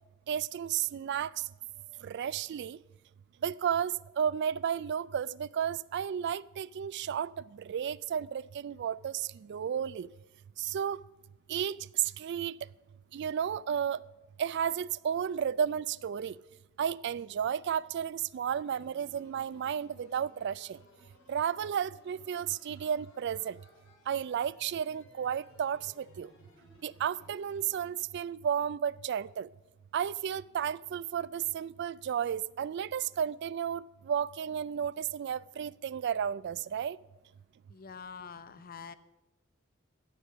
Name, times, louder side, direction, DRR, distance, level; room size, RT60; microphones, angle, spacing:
voice 1, 0.3-1.3 2.0-2.8 3.4-10.1 10.6-11.0 11.5-12.6 13.1-14.0 14.4-16.4 16.8-20.8 21.3-23.6 24.1-26.3 26.8-29.5 29.9-37.0, right 8 dB, 55° right, 0.3 m, -33 dB
sound 1, 18.6-27.9, left 1 dB, 70° left, 3.5 m, -61 dB
voice 2, 37.7-38.9, left 6 dB, 45° left, 0.6 m, -45 dB
15.0 x 8.3 x 5.9 m
head